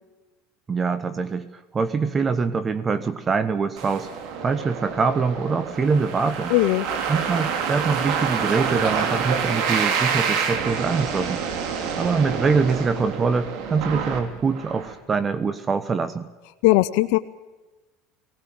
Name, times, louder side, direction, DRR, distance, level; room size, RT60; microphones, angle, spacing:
voice 1, 0.7-1.5 1.7-4.1 4.4-6.5 7.1-11.4 12.0-16.3, right 5 dB, 25° right, 14 dB, 1.0 m, -24 dB
sound 1, 3.8-14.9, right 6 dB, 65° right, 3.1 m, -27 dB
voice 2, 6.5-6.9 16.6-17.2, left 17 dB, 70° left, 10 dB, 0.7 m, -18 dB
19.0 x 18.0 x 7.7 m, 1.2 s
supercardioid pair, 110°, 0 cm